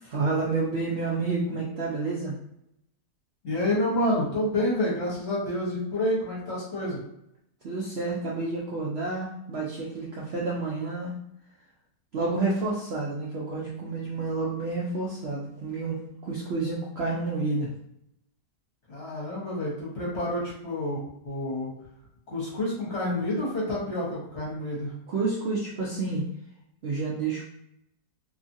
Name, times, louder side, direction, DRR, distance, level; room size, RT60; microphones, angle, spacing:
voice 1, 0.0-2.3 7.6-11.1 12.1-17.7 25.1-26.2 26.8-27.4, right 3 dB, 65° right, -4 dB, 0.6 m, -29 dB
voice 2, 3.4-7.0 18.9-21.7 22.3-24.9, left 1 dB, 45° left, -6 dB, 1.3 m, -28 dB
2.9 x 2.4 x 2.6 m, 0.77 s
omnidirectional pair, 1.6 m